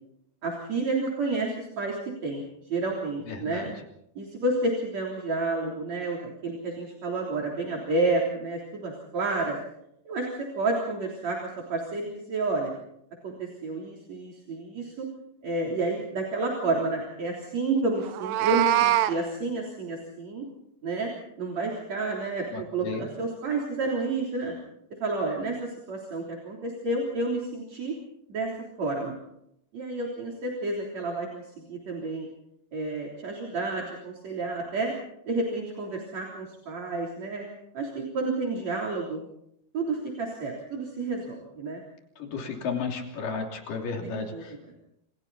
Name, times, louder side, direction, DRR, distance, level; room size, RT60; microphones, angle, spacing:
voice 1, 0.4-3.6 4.2-9.6 10.1-12.7 13.2-15.1 15.4-20.5 20.8-21.1 21.4-24.5 25.0-28.0 28.3-28.5 28.8-29.1 29.7-32.3 32.7-34.9 35.3-37.5 37.7-39.2 39.7-41.8 44.0-44.4, right 3 dB, 55° right, -1 dB, 4.7 m, -30 dB
voice 2, 3.2-3.7 22.5-23.1 42.2-44.8, left 5 dB, 90° left, 2 dB, 4.7 m, -34 dB
Meow, 18.1-19.1, right 14 dB, 90° right, 2.6 m, -23 dB
28.5 x 28.0 x 4.2 m, 0.77 s
omnidirectional pair, 3.7 m